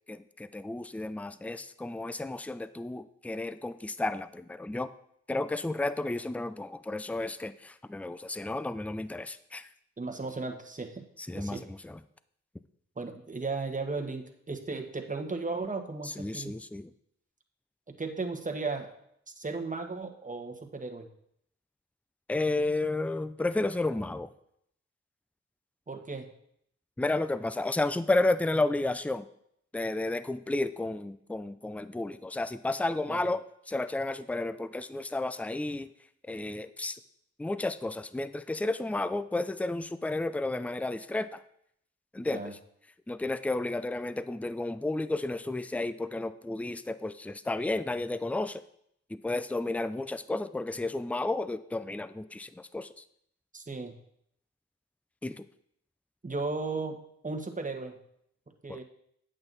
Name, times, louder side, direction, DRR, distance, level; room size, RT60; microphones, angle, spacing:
voice 1, 0.1-4.9 5.3-9.7 11.2-12.0 16.0-16.9 22.3-24.3 27.0-29.3 29.7-35.9 36.3-37.0 37.4-41.4 42.1-42.5 43.1-48.6 49.1-53.0 55.2-55.4 58.7-58.8, left 2 dB, 5° left, 13 dB, 0.5 m, -32 dB
voice 2, 10.0-11.1 11.3-11.6 13.0-16.5 17.9-19.0 19.4-21.1 25.9-26.3 33.1-33.2 42.2-42.5 53.5-53.9 56.2-57.0 57.2-58.0 58.6-58.8, right 3 dB, 25° right, 4 dB, 1.5 m, -35 dB
8.7 x 7.8 x 4.0 m, 0.71 s
cardioid pair, 45°, 29 cm